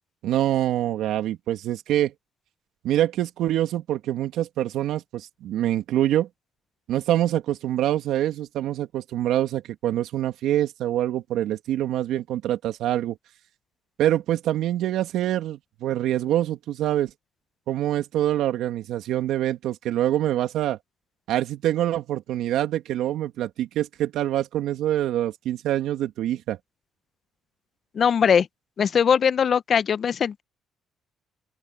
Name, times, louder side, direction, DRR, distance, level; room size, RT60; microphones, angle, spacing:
voice 1, 0.2-2.1 2.8-6.3 6.9-13.2 14.0-17.1 17.7-20.8 21.3-26.6, right 12 dB, 80° right, 2.6 m, -25 dB
voice 2, 27.9-28.5 28.8-30.4, left 7 dB, 55° left, 0.9 m, -20 dB
open air
supercardioid pair, 65°, 0 cm